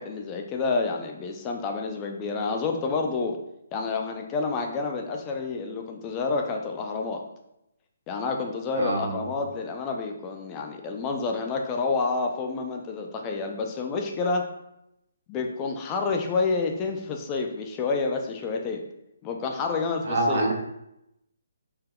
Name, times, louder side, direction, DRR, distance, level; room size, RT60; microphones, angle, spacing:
voice 1, 0.0-3.4 3.7-7.2 8.1-14.5 15.3-18.8 19.2-20.5, left 4 dB, 20° left, 3 dB, 0.4 m, -29 dB
voice 2, 8.7-9.2 20.0-20.5, right 1 dB, 60° right, 1 dB, 0.7 m, -25 dB
3.6 x 2.8 x 2.2 m, 0.83 s
figure-of-eight pair, 140°, 0 cm